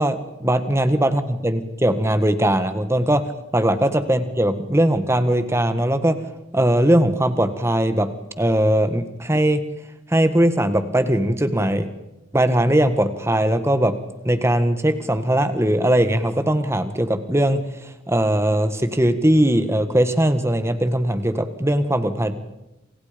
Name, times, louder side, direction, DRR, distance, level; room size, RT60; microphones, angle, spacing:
voice 1, 0.0-3.3 3.5-6.2 6.5-8.1 8.4-9.6 10.1-11.9 12.3-13.9 14.2-22.3, right 1 dB, 15° right, 10 dB, 1.6 m, -20 dB
28.5 x 27.5 x 5.2 m, 0.95 s
head